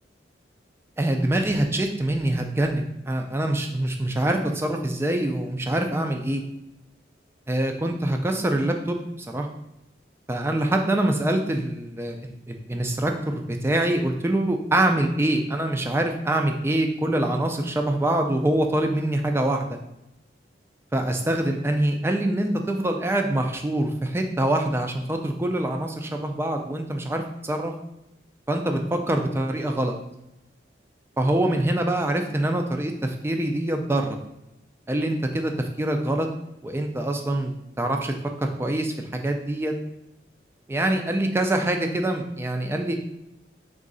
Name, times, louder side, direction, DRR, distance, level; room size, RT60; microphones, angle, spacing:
voice 1, 1.0-6.4 7.5-9.5 10.3-19.8 20.9-27.7 28.5-30.0 31.2-34.2 34.9-36.3 36.6-39.8 40.7-42.9, right 1 dB, 15° right, 4 dB, 0.3 m, -25 dB
3.7 x 3.1 x 3.8 m, 0.88 s
head